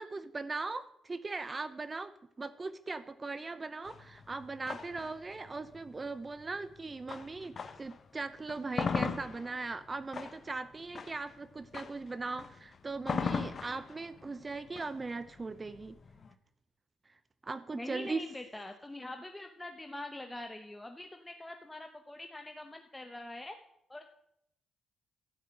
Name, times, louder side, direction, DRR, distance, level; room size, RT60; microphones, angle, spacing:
voice 1, 0.0-16.0 17.1-17.2 17.4-18.2, right 3 dB, 25° right, 14 dB, 0.6 m, -39 dB
sound 1, 3.8-8.0 8.4-16.3, left 5 dB, 45° left, 0.9 m, -39 dB
voice 2, 17.7-23.6 23.9-24.1, left 1 dB, 10° left, 5 dB, 0.9 m, -44 dB
12.0 x 5.7 x 8.7 m, 0.79 s
cardioid pair, 90°, 0 cm